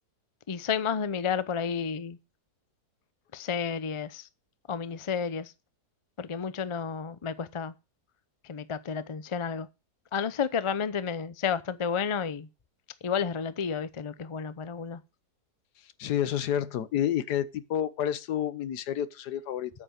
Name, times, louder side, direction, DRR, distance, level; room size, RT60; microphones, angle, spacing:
voice 1, 0.5-2.2 3.3-4.3 4.7-5.5 6.2-7.7 8.4-9.7 10.1-12.5 13.0-15.0, left 6 dB, 50° left, 0.3 m, -31 dB
voice 2, 16.0-19.7, left 10 dB, 85° left, 1.4 m, -29 dB
8.7 x 8.0 x 6.4 m
omnidirectional pair, 1.7 m